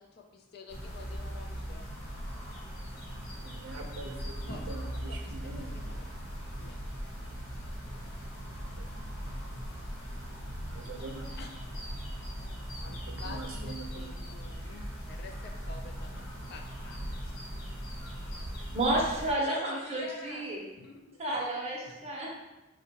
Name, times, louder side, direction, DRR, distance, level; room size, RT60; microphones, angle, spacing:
voice 1, 0.0-1.8 4.5-6.1 6.6-6.8 11.0-11.5 12.8-17.3 19.4-21.3, left 3 dB, 50° left, 2 dB, 0.3 m, -48 dB
sound 1, 0.7-19.3, equal, 75° left, 0.8 m, -39 dB
voice 2, 3.4-5.9 8.8-9.1 10.7-11.3 12.8-14.1, right 3 dB, 80° right, 2 dB, 0.5 m, -44 dB
voice 3, 18.7-20.6 21.2-22.4, right 1 dB, 30° right, -3 dB, 0.6 m, -31 dB
3.7 x 2.1 x 2.8 m, 1.0 s
head